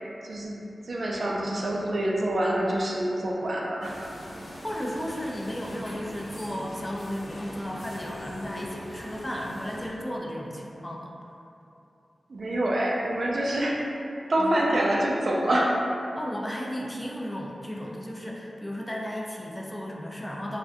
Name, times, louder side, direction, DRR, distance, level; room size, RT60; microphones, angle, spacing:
voice 1, 0.2-0.5 0.8-4.0 12.3-13.8 14.3-15.8, right 1 dB, 60° right, -3 dB, 0.4 m, -26 dB
sound 1, 3.8-9.9, equal, 80° left, 0.8 m, -41 dB
voice 2, 4.6-11.1 14.4-14.9 16.1-20.6, equal, 15° left, -2 dB, 0.4 m, -34 dB
3.4 x 2.2 x 2.6 m, 2.8 s
wide cardioid pair, 70°, 0 cm